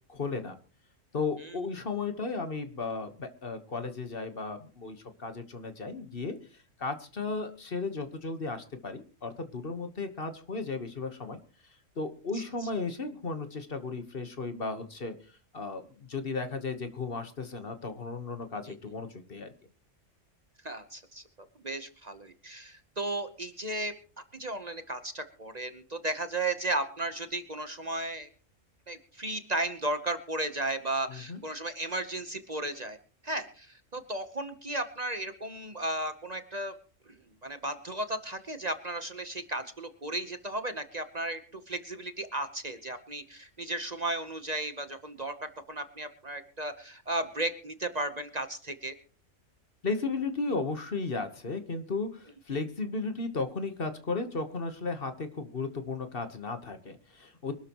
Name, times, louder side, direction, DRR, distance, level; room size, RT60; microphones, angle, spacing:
voice 1, 0.1-0.5 1.1-6.4 6.8-11.4 12.0-15.1 15.5-19.5 31.1-31.4 49.8-57.5, left 3 dB, 50° left, 8 dB, 1.5 m, -35 dB
voice 2, 12.3-12.7 18.6-18.7 20.6-21.2 21.6-23.9 24.3-28.3 28.9-33.0 33.2-36.7 37.1-48.9, right 2 dB, 35° right, 9 dB, 1.1 m, -35 dB
24.0 x 12.5 x 3.0 m, 0.38 s
omnidirectional pair, 1.3 m